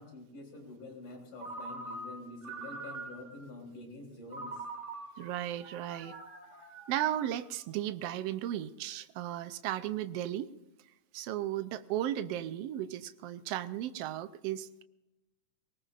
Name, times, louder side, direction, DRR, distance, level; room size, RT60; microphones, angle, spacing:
voice 1, 0.0-4.6, left 2 dB, 90° left, -1 dB, 5.2 m, -47 dB
Ringtone, 1.4-3.5 4.3-7.6, right 2 dB, 25° right, 2.8 m, -44 dB
voice 2, 5.2-6.2 6.9-10.5 11.1-14.8, right 12 dB, 75° right, 12 dB, 1.5 m, -35 dB
23.0 x 19.5 x 2.5 m, 0.97 s
omnidirectional pair, 3.5 m